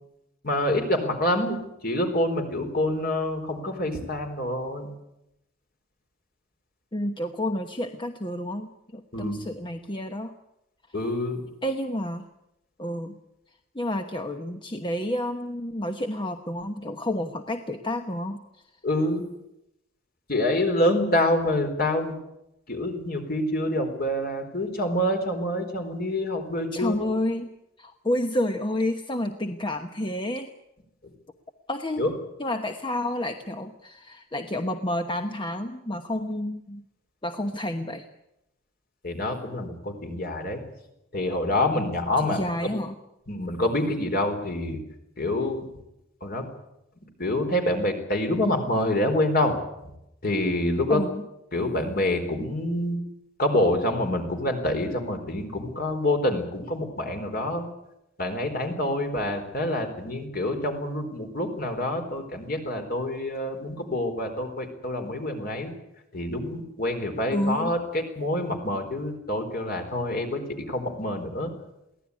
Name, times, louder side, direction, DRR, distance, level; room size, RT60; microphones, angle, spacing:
voice 1, 0.4-4.9 9.1-9.4 10.9-11.4 18.8-19.3 20.3-22.1 22.7-27.1 31.0-31.1 32.0-32.1 39.0-40.6 41.1-42.7 43.3-44.8 45.2-45.6 46.2-46.5 47.2-49.6 50.2-51.0 51.5-53.0 53.4-57.6 58.2-65.7 66.1-71.5, left 1 dB, 50° left, 5 dB, 4.3 m, -26 dB
voice 2, 6.9-10.3 11.6-12.3 12.8-13.2 13.7-18.4 26.7-27.5 27.8-30.5 31.7-32.0 32.4-36.8 37.2-38.1 42.3-43.0 50.9-51.2 67.3-67.7, left 1 dB, 25° left, 6 dB, 1.1 m, -30 dB
23.0 x 16.5 x 9.7 m, 0.86 s
head